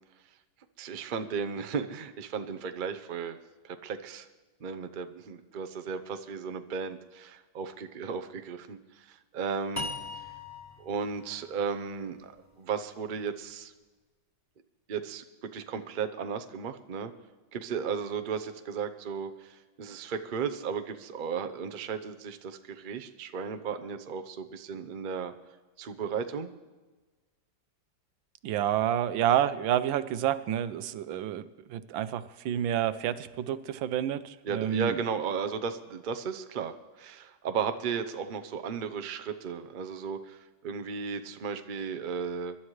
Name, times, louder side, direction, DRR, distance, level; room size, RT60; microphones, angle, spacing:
voice 1, 0.8-3.4 3.6-4.3 4.6-9.9 10.8-12.3 12.6-13.7 14.9-15.2 15.5-17.1 17.5-25.3 25.8-26.5 34.4-42.6, right 6 dB, 60° right, 8 dB, 0.5 m, -35 dB
sound 1, 9.8-12.9, left 3 dB, 10° left, 1.1 m, -41 dB
voice 2, 28.4-35.0, right 11 dB, 85° right, 14 dB, 1.4 m, -29 dB
23.5 x 11.5 x 3.2 m, 1.3 s
omnidirectional pair, 2.1 m